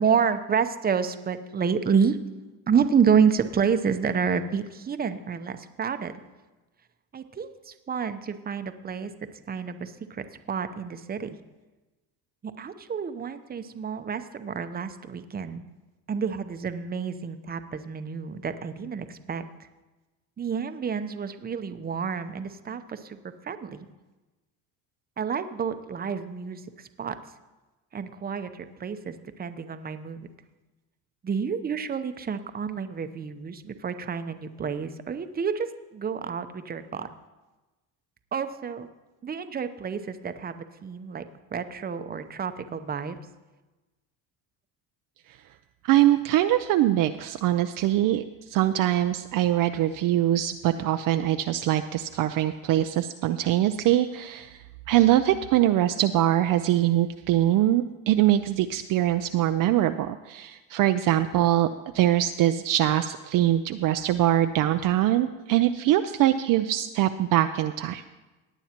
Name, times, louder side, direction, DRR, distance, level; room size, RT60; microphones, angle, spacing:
voice 1, 0.0-2.2 2.7-6.1 7.1-9.1 9.5-11.4 12.4-15.6 16.1-19.4 20.4-23.2 23.4-23.9 25.2-27.1 27.9-30.3 31.2-37.1 38.3-38.9 39.2-41.2 41.5-43.2, right 6 dB, 20° right, 9 dB, 0.8 m, -29 dB
voice 2, 45.8-48.2 48.5-54.6 54.9-61.7 61.9-68.0, right 13 dB, 50° right, 8 dB, 0.5 m, -23 dB
18.0 x 8.8 x 2.9 m, 1.1 s
supercardioid pair, 90°, 42 cm